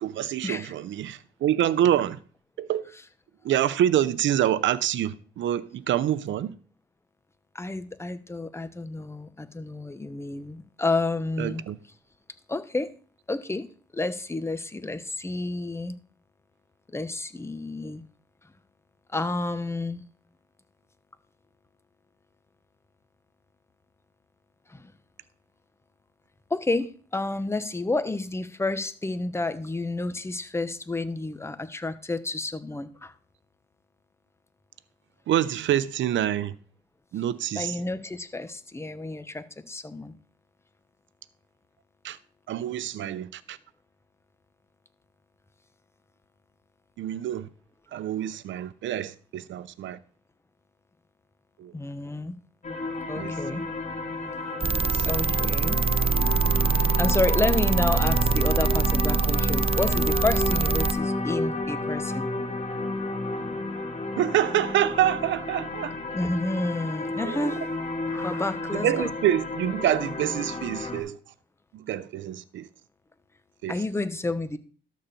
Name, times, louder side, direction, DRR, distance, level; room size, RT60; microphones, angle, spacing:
voice 1, 0.0-2.2 2.6-2.9 3.4-6.5 11.4-11.8 35.3-36.6 37.1-37.8 42.0-42.2 42.5-43.6 47.0-47.5 47.9-50.0 51.6-51.7 53.1-53.3 54.8-55.2 64.2-65.9 67.2-67.5 68.7-71.2 71.7-72.7 73.6-73.8, right 11 dB, 70° right, 0.8 m, -26 dB
voice 2, 7.5-11.6 12.5-12.9 13.3-13.7 13.9-16.0 16.9-18.0 19.1-20.0 24.7-24.9 26.5-33.1 37.5-40.1 51.7-52.4 53.1-53.6 55.1-55.8 56.7-62.3 66.1-67.6 68.0-69.1 73.7-74.6, left 2 dB, 15° left, 1.0 m, -30 dB
sound 1, 52.6-71.0, left 2 dB, 40° left, 2.3 m, -31 dB
sound 2, 54.6-60.9, right 6 dB, 30° right, 0.6 m, -24 dB
12.5 x 4.2 x 6.9 m
cardioid pair, 90°, 20 cm